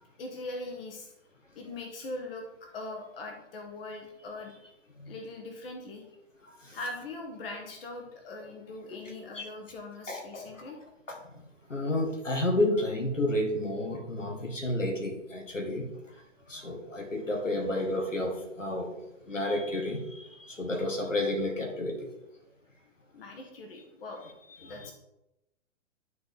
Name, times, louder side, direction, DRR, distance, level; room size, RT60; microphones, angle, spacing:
voice 1, 0.2-1.1 1.5-4.7 5.1-6.0 6.7-10.8 23.1-24.2 24.6-24.9, left 2 dB, 50° left, 3 dB, 1.4 m, -41 dB
voice 2, 6.5-6.8 9.3-9.5 10.1-10.6 11.1-16.2 16.5-18.9 19.3-22.1 24.6-24.9, left 1 dB, 85° left, 1 dB, 2.1 m, -31 dB
11.5 x 4.2 x 3.8 m, 0.91 s
figure-of-eight pair, 115°, 37 cm